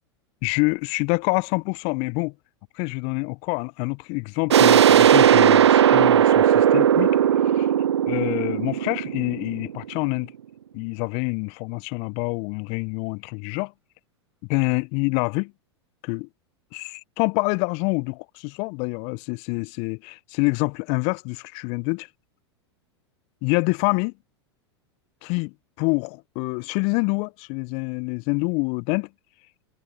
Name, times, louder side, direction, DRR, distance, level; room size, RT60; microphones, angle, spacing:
voice 1, 0.4-2.3 2.8-7.1 7.6-7.7 8.1-10.3 10.7-13.7 14.5-15.5 16.0-16.3 16.7-22.1 23.4-24.1 25.2-25.5 25.8-29.1, left 33 dB, 45° left, 0.7 m, -26 dB
sound 1, 4.5-10.0, right 10 dB, 75° right, 0.9 m, -17 dB
figure-of-eight pair, 90°, 14 cm